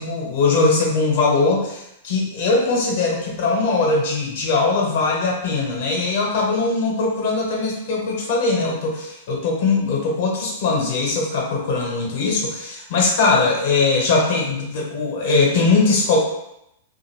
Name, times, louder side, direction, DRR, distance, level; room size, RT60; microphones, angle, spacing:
voice 1, 0.0-16.2, left 3 dB, 60° left, -1 dB, 0.9 m, -20 dB
2.6 x 2.5 x 3.0 m, 0.81 s
hypercardioid pair, 110°, 0 cm